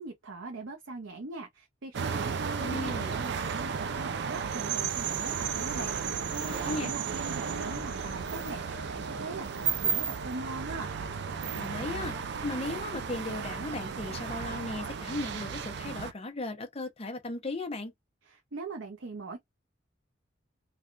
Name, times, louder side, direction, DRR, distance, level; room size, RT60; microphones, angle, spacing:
voice 1, 0.0-10.9 18.3-19.4, right 3 dB, 85° right, 0.7 m, -41 dB
sound 1, 1.9-16.1, right 6 dB, 60° right, 0.4 m, -34 dB
voice 2, 2.6-3.2 6.5-6.9 11.5-12.1 12.4-17.9, left 2 dB, 30° left, 0.7 m, -36 dB
sound 2, 5.7-12.5, equal, 70° left, 1.0 m, -48 dB
3.3 x 2.3 x 2.5 m
head